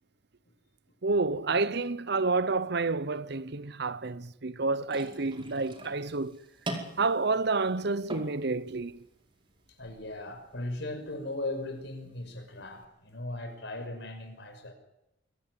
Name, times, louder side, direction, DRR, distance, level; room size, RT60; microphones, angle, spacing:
voice 1, 1.0-6.4 7.0-9.1, right 3 dB, 60° right, 0.9 m, -29 dB
sound 1, 4.8-12.9, right 1 dB, 25° right, 4.9 m, -45 dB
voice 2, 9.8-14.7, left 2 dB, 65° left, 6.1 m, -38 dB
24.5 x 16.0 x 9.5 m
head